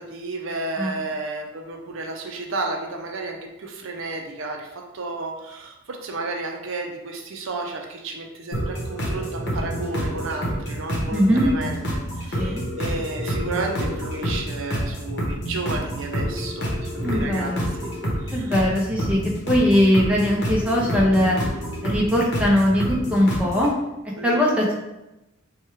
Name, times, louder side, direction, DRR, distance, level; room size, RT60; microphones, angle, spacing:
voice 1, 0.0-11.8 12.2-17.9 18.2-18.5 24.2-24.4, right 3 dB, 65° right, 2 dB, 0.5 m, -32 dB
sound 1, 8.5-23.7, equal, 55° left, 0.9 m, -28 dB
voice 2, 11.1-11.4 12.4-12.6 17.0-17.7 18.3-19.2 19.5-21.4 21.8-23.7 24.2-24.7, equal, 5° right, -4 dB, 0.6 m, -20 dB
4.5 x 2.3 x 3.1 m, 0.95 s
head